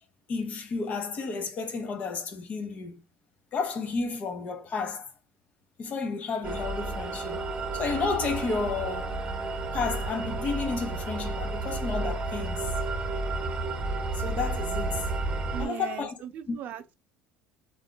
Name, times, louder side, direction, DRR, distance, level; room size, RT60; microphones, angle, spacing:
voice 1, 0.3-3.0 3.5-5.1 5.8-7.4 7.7-9.1 9.7-12.7 14.1-15.0 15.6-16.1 16.5-16.6, left 4 dB, 45° left, 0.8 m, -32 dB
sound 1, 6.4-15.7, right 2 dB, 30° right, 0.8 m, -31 dB
voice 2, 15.5-16.9, right 10 dB, 55° right, 0.4 m, -38 dB
3.7 x 2.5 x 2.2 m
supercardioid pair, 95°, 4 cm